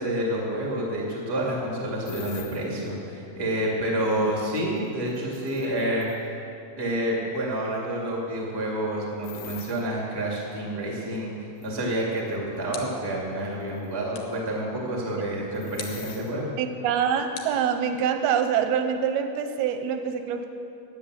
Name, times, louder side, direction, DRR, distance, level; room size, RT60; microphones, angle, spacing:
voice 1, 0.0-6.3 6.8-11.3 11.6-16.5, right 1 dB, 30° right, -3 dB, 0.4 m, -28 dB
sound 1, 2.0-2.6 4.6-6.3 9.2-9.8 11.6-12.3 12.8-12.9 13.7-13.9 15.5-16.3, left 11 dB, 85° left, 2.6 m, -45 dB
sound 2, 12.7-13.2 14.1-14.5 15.8-16.1 17.3-18.2, left 6 dB, 70° left, 2.2 m, -42 dB
voice 2, 16.6-20.5, right 8 dB, 90° right, 7 dB, 2.6 m, -25 dB
10.5 x 8.6 x 7.4 m, 2.5 s
omnidirectional pair, 4.5 m